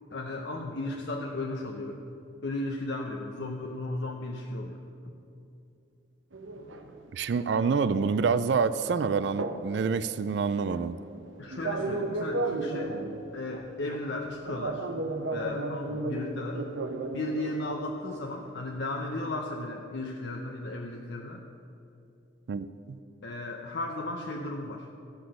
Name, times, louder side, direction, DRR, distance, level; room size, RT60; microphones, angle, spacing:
voice 1, 0.1-2.1 2.4-4.8 11.4-13.0 13.3-14.9 15.3-16.6 17.1-21.4 23.2-24.9, left 2 dB, 60° left, 2 dB, 0.7 m, -35 dB
sound 1, 6.3-7.9 8.2-9.9 10.2-17.6 18.1-18.2 18.4-18.7, right 2 dB, 85° right, 0.8 m, -34 dB
voice 2, 7.1-11.0 22.5-23.0, right 5 dB, 60° right, 13 dB, 0.3 m, -27 dB
14.0 x 6.0 x 6.3 m, 2.7 s
head